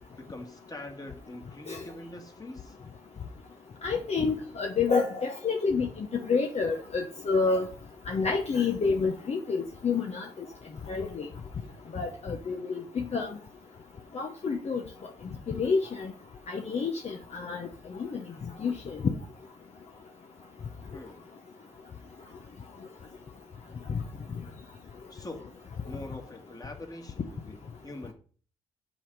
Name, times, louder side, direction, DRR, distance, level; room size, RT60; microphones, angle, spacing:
voice 1, 0.2-2.8 20.9-21.2 25.1-25.4 25.8-28.1, left 1 dB, 25° left, 3 dB, 1.9 m, -43 dB
voice 2, 3.8-7.7 8.1-10.3 10.9-11.3 11.9-13.3 14.1-14.8 15.5-16.1 16.5-17.7 18.0-18.2 18.6-19.0 23.9-24.0, left 4 dB, 50° left, 2 dB, 0.9 m, -28 dB
7.5 x 3.6 x 6.1 m, 0.43 s
hypercardioid pair, 45°, 14 cm